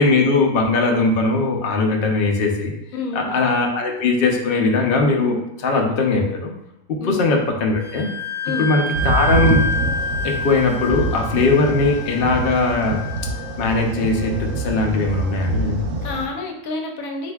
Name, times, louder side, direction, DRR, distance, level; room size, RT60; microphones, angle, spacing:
voice 1, 0.0-2.7 3.1-6.5 6.9-8.1 8.6-9.6 10.2-13.0 13.6-15.9, left 3 dB, 55° left, 2 dB, 0.7 m, -19 dB
voice 2, 2.9-3.4 7.0-7.3 8.4-8.7 16.0-17.3, left 3 dB, 80° left, 2 dB, 1.1 m, -28 dB
Wind instrument woodwind instrument, 7.8-15.2, left 2 dB, 5° right, 1.1 m, -29 dB
sound 1, 8.9-16.3, right 2 dB, 70° right, 0.9 m, -25 dB
7.5 x 2.6 x 2.3 m, 0.89 s
omnidirectional pair, 1.4 m